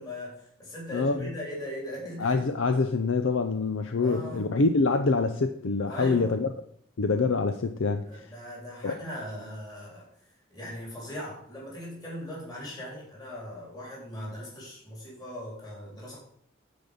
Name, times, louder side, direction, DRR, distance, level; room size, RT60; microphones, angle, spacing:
voice 1, 0.0-2.4 4.0-4.5 5.9-6.5 8.1-10.1 10.5-16.2, left 1 dB, 20° left, 3.9 m, -39 dB
voice 2, 2.2-6.5 7.0-8.0 8.8-9.0, left 3 dB, 70° left, 0.6 m, -25 dB
9.5 x 5.2 x 7.0 m
head